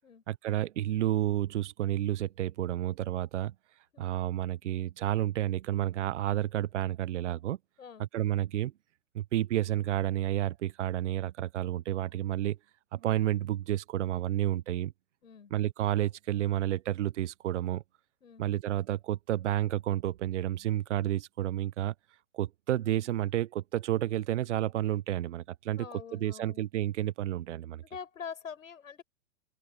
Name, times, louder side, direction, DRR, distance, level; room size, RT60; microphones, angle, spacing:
voice 1, 0.3-3.5 4.0-7.6 8.0-8.7 9.1-12.6 12.9-14.9 15.5-17.8 18.4-21.9 22.3-25.9 26.1-27.8, right 13 dB, 60° right, 1.2 m, -30 dB
voice 2, 15.2-15.5 18.2-18.5 25.8-26.6 27.8-29.0, left 6 dB, 75° left, 6.4 m, -45 dB
hypercardioid pair, 115°, 40 cm